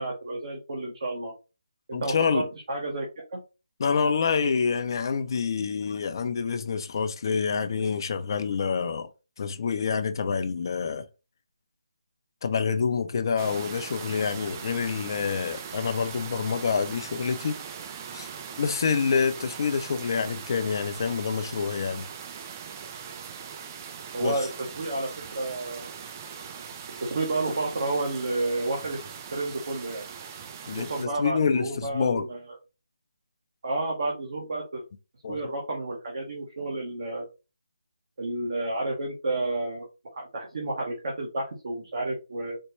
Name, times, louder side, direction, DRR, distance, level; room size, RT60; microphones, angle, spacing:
voice 1, 0.0-1.3 1.9-3.4 24.1-25.9 27.0-29.0 29.3-30.1 30.8-32.6 33.6-34.8 35.3-37.3 38.2-39.9 40.1-42.6, right 2 dB, 55° right, 1.1 m, -31 dB
voice 2, 1.9-2.5 3.8-9.1 9.4-11.1 12.4-17.6 18.1-18.3 18.6-22.1 24.2-24.4 30.7-32.2 35.2-35.4, left 5 dB, 40° left, 0.5 m, -27 dB
sound 1, 13.4-31.1, right 7 dB, 25° right, 0.3 m, -40 dB
4.3 x 2.2 x 3.1 m
figure-of-eight pair, 160°, 3 cm